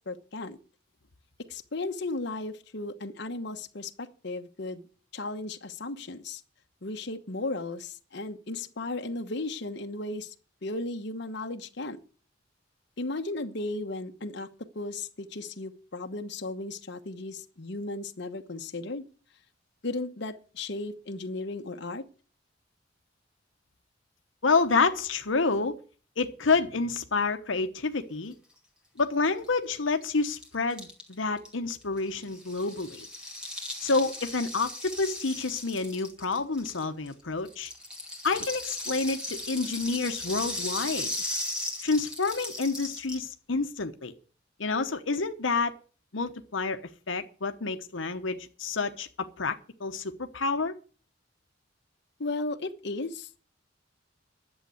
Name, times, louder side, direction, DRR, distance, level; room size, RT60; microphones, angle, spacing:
voice 1, 0.1-0.6 1.5-4.8 5.1-6.4 6.8-10.3 10.6-12.0 13.0-14.5 14.7-19.1 19.8-22.0 52.2-53.3, left 2 dB, 60° left, 1.1 m, -35 dB
voice 2, 24.4-25.8 26.2-28.3 29.0-33.1 33.8-37.7 38.2-41.1 41.8-44.1 44.6-45.7 46.1-46.8 47.1-50.7, left 4 dB, 80° left, 1.0 m, -28 dB
Rattle (instrument), 29.4-29.5 29.7-29.8 30.0-37.1 37.5-43.3, left 1 dB, 5° right, 2.4 m, -37 dB
11.0 x 7.4 x 9.2 m
head